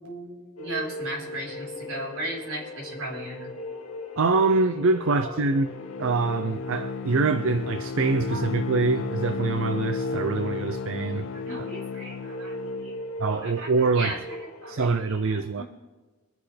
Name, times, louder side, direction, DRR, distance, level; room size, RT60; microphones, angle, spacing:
voice 1, 0.0-3.5 5.1-5.3 8.3-8.5 11.3-12.9 13.3-15.6, right 1 dB, 80° right, 4.4 m, -37 dB
sound 1, 0.6-15.0, left 1 dB, 75° left, 2.0 m, -38 dB
voice 2, 4.2-5.7 6.0-11.3 11.6-11.7 13.2-14.2 14.7-15.6, right 3 dB, 60° right, 0.5 m, -24 dB
Bowed string instrument, 5.4-13.1, left 5 dB, 60° left, 0.5 m, -34 dB
24.0 x 10.0 x 3.4 m
head